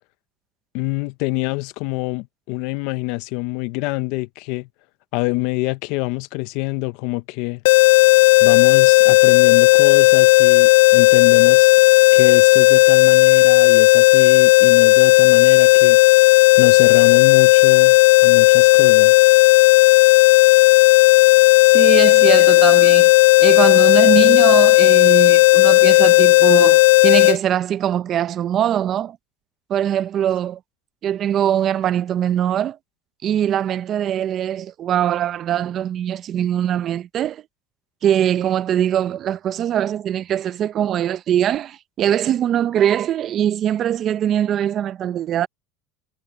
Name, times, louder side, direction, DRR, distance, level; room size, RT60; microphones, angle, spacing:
voice 1, 0.7-4.7 5.1-7.6 8.4-11.7 12.1-16.0 16.6-18.0 18.2-19.1, left 22 dB, 70° left, 0.8 m, -25 dB
sound 1, 7.6-27.4, left 22 dB, 85° left, 0.4 m, -12 dB
voice 2, 21.6-23.1 23.4-29.2 29.7-30.6 31.0-32.8 33.2-37.4 38.0-45.5, right 10 dB, 45° right, 0.9 m, -22 dB
supercardioid pair, 110°, 0 cm